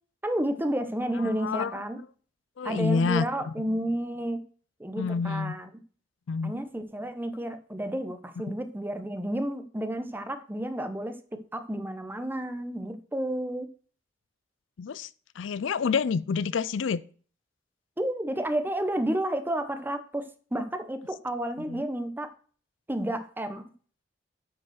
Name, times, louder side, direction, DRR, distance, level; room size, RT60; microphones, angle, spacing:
voice 1, 0.2-2.0 2.6-4.4 4.8-5.7 6.4-11.2 11.5-13.7 18.0-20.2 20.5-22.3 22.9-23.7, right 1 dB, 10° right, 0.9 m, -31 dB
voice 2, 1.2-1.8 2.6-3.5 5.0-5.5 6.3-6.6 14.8-15.1 15.4-17.0 21.7-21.8, left 5 dB, 85° left, 0.4 m, -28 dB
8.8 x 5.5 x 6.4 m
head